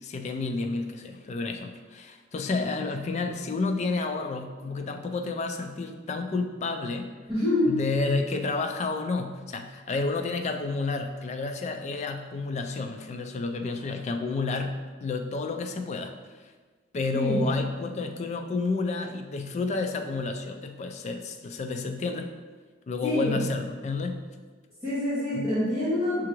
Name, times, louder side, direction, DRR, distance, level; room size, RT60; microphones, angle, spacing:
voice 1, 0.0-7.1 7.7-16.1 16.9-22.3 22.9-24.3 25.3-25.5, left 3 dB, 35° left, 5 dB, 0.3 m, -30 dB
voice 2, 7.3-7.7 17.1-17.5 23.0-23.5 24.8-26.3, left 1 dB, 15° right, -15 dB, 1.4 m, -26 dB
6.5 x 2.4 x 3.0 m, 1.4 s
head